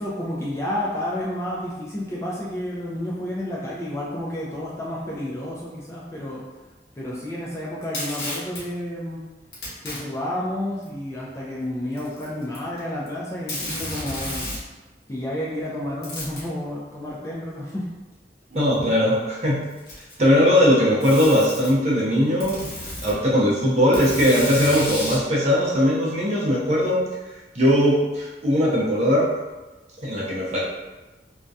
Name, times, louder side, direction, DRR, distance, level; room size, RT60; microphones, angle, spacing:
voice 1, 0.0-6.4 7.0-9.2 9.8-14.6 15.1-17.9, left 1 dB, 15° left, -6 dB, 0.3 m, -30 dB
Packing tape duct tape, 7.8-8.6 9.5-10.0 10.8-10.9 11.9-12.8 13.1-13.2 13.5-14.6 16.0-16.5 17.7-17.8 18.7-18.8 19.6-20.3 21.0-21.7 22.4-23.1 23.9-25.2, left 1 dB, 65° left, 0.9 m, -32 dB
voice 2, 18.5-19.6 20.2-22.7 23.0-27.0 27.5-29.3 30.0-30.7, equal, 40° right, -5 dB, 0.6 m, -19 dB
2.3 x 2.1 x 2.6 m, 1.1 s
head